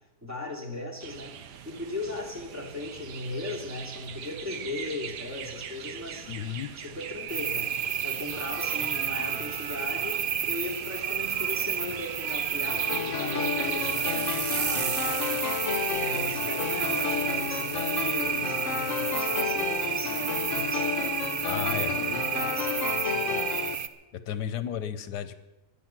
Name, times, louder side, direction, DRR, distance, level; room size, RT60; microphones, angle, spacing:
voice 1, 0.2-1.3 1.6-6.3 6.8-7.7 8.0-15.3 15.8-21.1 21.5-23.5, left 2 dB, 10° right, -3 dB, 2.6 m, -38 dB
sound 1, 1.0-17.4, right 8 dB, 85° right, 1.5 m, -42 dB
voice 2, 6.3-6.7 8.8-9.5 21.4-22.0 24.1-25.4, left 9 dB, 80° left, 13 dB, 1.3 m, -34 dB
sound 2, 7.3-23.9, right 8 dB, 60° right, 0.5 m, -30 dB
sound 3, 12.7-23.8, left 7 dB, 55° left, 1.0 m, -32 dB
23.0 x 8.9 x 5.9 m, 1.0 s
omnidirectional pair, 1.8 m